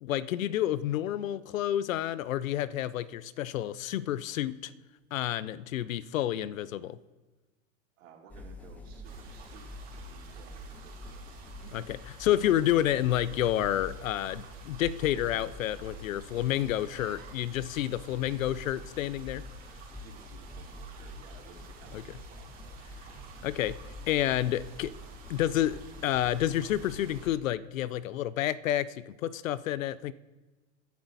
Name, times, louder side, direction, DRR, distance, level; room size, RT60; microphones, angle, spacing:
voice 1, 0.0-4.7 5.1-7.0 11.6-19.4 21.9-22.0 23.4-23.8 24.1-24.9 25.3-30.1, left 12 dB, 90° left, 18 dB, 0.7 m, -29 dB
voice 2, 8.0-11.3 16.8-17.5 19.9-22.8, right 6 dB, 85° right, -1 dB, 3.7 m, -55 dB
sound 1, 8.3-27.3, left 1 dB, 5° left, 0.5 m, -46 dB
sound 2, 9.0-27.3, right 6 dB, 25° right, 2.9 m, -53 dB
22.0 x 10.5 x 4.1 m, 1.2 s
supercardioid pair, 165°, 39 cm